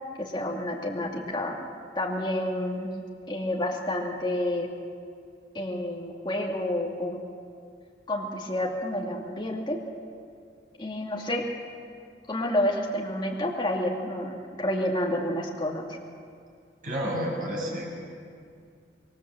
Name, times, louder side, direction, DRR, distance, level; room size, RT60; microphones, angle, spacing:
voice 1, 0.2-1.7 1.9-2.9 3.3-4.7 5.5-7.2 8.1-9.8 10.8-11.4 12.3-15.9, left 1 dB, 25° left, -2 dB, 2.4 m, -29 dB
voice 2, 16.8-18.0, equal, 50° right, -2 dB, 7.6 m, -30 dB
25.5 x 23.5 x 7.8 m, 2.3 s
head